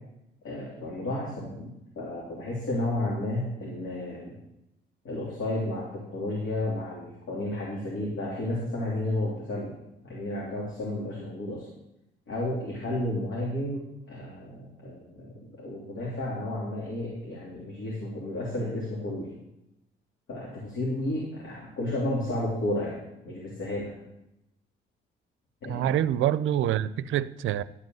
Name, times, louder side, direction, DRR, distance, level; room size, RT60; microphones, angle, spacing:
voice 1, 0.4-4.3 5.0-9.8 10.0-11.7 12.3-19.3 20.3-23.0 23.2-24.0 25.6-25.9, left 1 dB, 75° left, 3.2 m, -32 dB
voice 2, 25.7-27.6, right 11 dB, 80° right, 0.5 m, -26 dB
12.5 x 5.3 x 7.8 m
cardioid pair, 90°, 20 cm